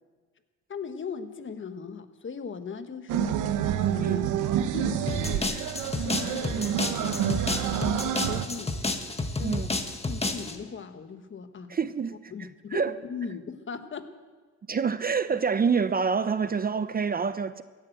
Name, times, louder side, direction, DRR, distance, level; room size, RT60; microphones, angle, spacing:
voice 1, 0.7-3.5 3.9-4.2 4.7-6.7 7.0-9.6 10.0-11.8 12.3-14.1 15.3-15.4, left 6 dB, 40° left, 1.4 m, -39 dB
sound 1, 3.1-8.5, right 10 dB, 90° right, 1.0 m, -28 dB
sound 2, 5.1-10.6, left 2 dB, 20° left, 1.6 m, -31 dB
voice 2, 11.7-12.3 12.7-12.9 14.7-17.6, right 5 dB, 30° right, 0.6 m, -27 dB
16.0 x 11.0 x 7.8 m
cardioid pair, 90°, 30 cm